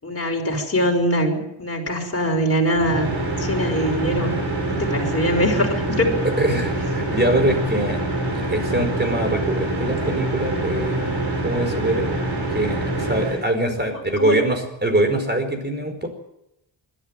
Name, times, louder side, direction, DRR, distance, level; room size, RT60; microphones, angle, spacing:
voice 1, 0.0-3.1 3.4-4.3 4.6-6.1 14.2-14.4, equal, 30° left, 1 dB, 5.5 m, -22 dB
sound 1, 2.7-13.4, right 2 dB, 55° right, 6.7 m, -25 dB
voice 2, 6.4-8.0 8.3-12.2 12.5-16.1, right 1 dB, 20° right, 6 dB, 5.0 m, -23 dB
21.0 x 13.5 x 9.4 m, 0.85 s
wide cardioid pair, 90°, 46 cm